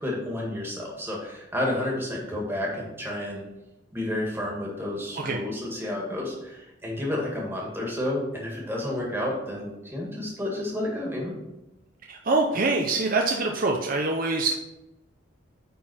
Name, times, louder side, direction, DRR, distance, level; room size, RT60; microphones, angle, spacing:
voice 1, 0.0-3.4 3.9-11.3, left 1 dB, 10° right, -3 dB, 1.8 m, -31 dB
voice 2, 12.1-14.5, right 3 dB, 45° right, 1 dB, 0.6 m, -24 dB
9.2 x 4.1 x 4.3 m, 0.95 s
head